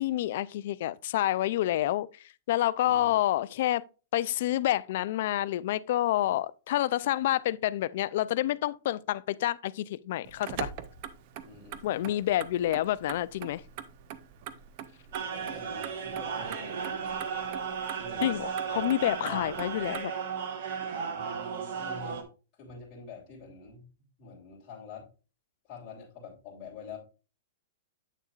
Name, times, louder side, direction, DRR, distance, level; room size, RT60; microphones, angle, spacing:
voice 1, 0.0-2.1 2.5-3.8 4.1-10.7 11.8-13.6 18.2-20.2, left 14 dB, 45° left, 0.3 m, -28 dB
Motor vehicle (road), 10.2-20.0, right 9 dB, 35° right, 0.5 m, -43 dB
voice 2, 11.4-12.3 15.1-17.1 18.0-18.4 18.7-18.9 19.3-19.4 21.1-22.3 22.6-25.1 25.7-27.0, left 3 dB, 20° left, 3.1 m, -46 dB
sound 1, 15.1-22.2, right 6 dB, 50° right, 1.2 m, -35 dB
8.5 x 6.6 x 2.4 m
supercardioid pair, 175°, 0 cm